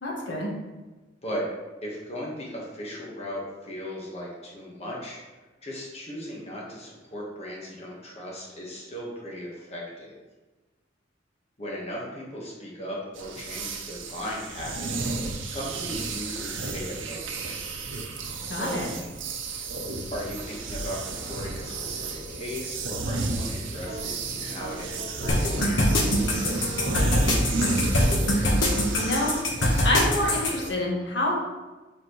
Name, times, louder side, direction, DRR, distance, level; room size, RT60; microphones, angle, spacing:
voice 1, 0.0-0.5 18.5-18.9 28.9-29.3 29.8-31.4, left 1 dB, 70° left, -4 dB, 1.6 m, -26 dB
voice 2, 1.8-5.2 5.6-10.2 11.6-15.1 15.5-17.6 18.5-18.9 20.1-27.4, equal, 35° left, -4 dB, 1.3 m, -37 dB
sound 1, 13.2-30.7, right 3 dB, 85° right, 0.8 m, -32 dB
sound 2, 23.8-27.3 27.6-27.8 28.1-29.7, right 2 dB, 45° right, 0.8 m, -40 dB
sound 3, 25.3-30.5, left 1 dB, 85° left, 1.2 m, -23 dB
7.7 x 4.2 x 3.1 m, 1.2 s
head